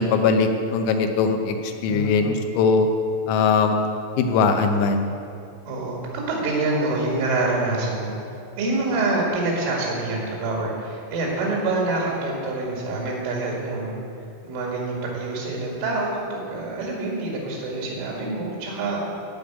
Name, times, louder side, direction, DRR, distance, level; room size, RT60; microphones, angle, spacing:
voice 1, 0.0-2.9 3.3-5.1, left 4 dB, 85° left, 5 dB, 3.6 m, -21 dB
voice 2, 5.7-8.1 8.6-14.0 14.4-19.0, right 2 dB, 75° right, -3 dB, 4.5 m, -26 dB
16.0 x 5.4 x 9.2 m, 2.4 s
omnidirectional pair, 5.8 m